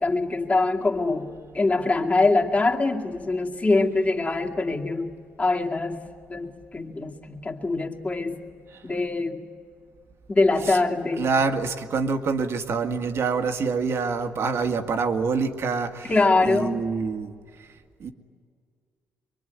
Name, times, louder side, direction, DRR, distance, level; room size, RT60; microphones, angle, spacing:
voice 1, 0.0-1.3 1.5-5.1 5.4-6.0 6.3-8.4 8.8-9.5 10.3-11.3 16.1-16.8, left 3 dB, 30° left, 0 dB, 2.5 m, -23 dB
voice 2, 11.2-16.1 16.4-17.3 18.0-18.1, right 4 dB, 60° right, 6 dB, 1.9 m, -26 dB
24.5 x 23.0 x 9.6 m, 2.1 s
cardioid pair, 85°, 5 cm